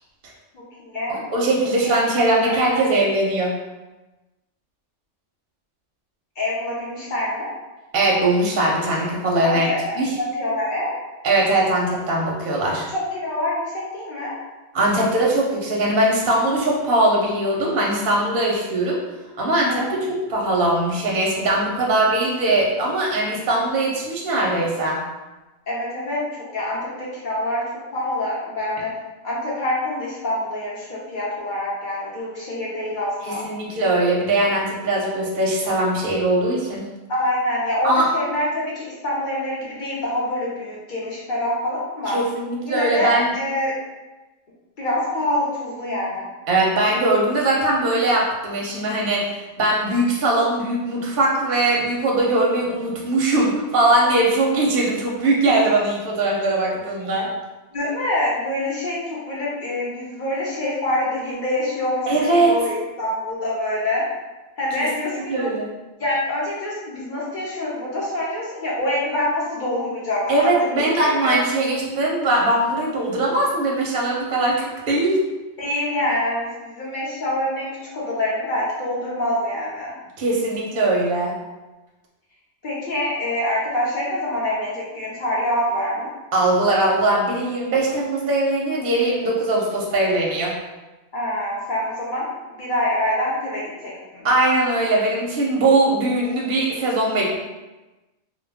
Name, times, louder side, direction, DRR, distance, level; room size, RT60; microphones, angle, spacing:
voice 1, 0.5-1.2 1.8-2.0 2.4-2.8 6.4-7.5 9.4-10.9 12.9-14.3 19.7-20.0 25.7-26.2 26.5-27.6 27.9-28.9 29.2-33.5 37.1-42.2 42.6-43.7 44.8-46.3 57.7-64.1 64.6-65.5 66.0-70.5 71.0-71.4 75.6-79.9 82.6-86.1 91.1-94.3, left 1 dB, 50° left, -6 dB, 0.7 m, -25 dB
voice 2, 1.3-3.5 7.9-10.1 11.2-12.9 14.7-19.0 19.4-25.0 33.2-36.8 37.8-38.0 42.1-43.3 46.5-57.3 62.1-62.5 64.8-64.9 65.1-65.7 70.3-75.2 80.2-81.3 86.3-90.5 94.2-97.4, right 2 dB, 55° right, -3 dB, 0.6 m, -20 dB
2.2 x 2.2 x 3.3 m, 1.1 s
omnidirectional pair, 1.3 m